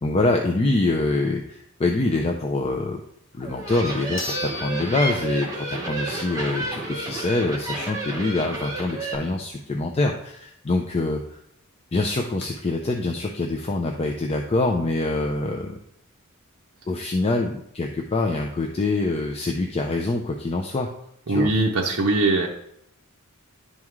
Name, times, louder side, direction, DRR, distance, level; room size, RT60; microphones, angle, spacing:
voice 1, 0.0-3.0 3.4-11.4 11.9-15.8 16.9-20.9 21.3-21.5, left 2 dB, 25° left, 2 dB, 0.4 m, -25 dB
sound 1, 3.3-3.4 4.2-5.9 6.3-6.4 11.0-11.1 11.3-11.4 12.0-12.4, left 3 dB, 55° left, 0.9 m, -36 dB
sound 2, 3.4-9.1, right 2 dB, 15° right, 1.1 m, -31 dB
voice 2, 21.3-22.5, right 2 dB, 60° right, -2 dB, 0.7 m, -21 dB
11.0 x 3.6 x 3.1 m, 0.73 s
head